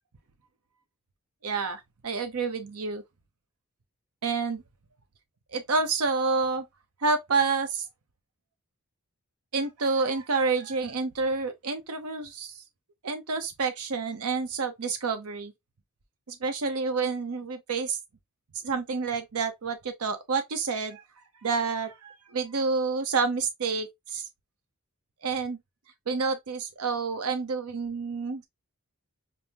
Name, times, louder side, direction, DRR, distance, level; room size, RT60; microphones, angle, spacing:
voice 1, 1.4-3.0 4.2-4.6 5.5-6.6 7.0-7.8 9.5-12.6 13.0-15.5 16.3-18.0 18.6-21.0 21.4-24.3 25.2-25.6 26.1-28.4, right 4 dB, 85° right, 0.7 m, -29 dB
5.3 x 2.0 x 2.8 m
head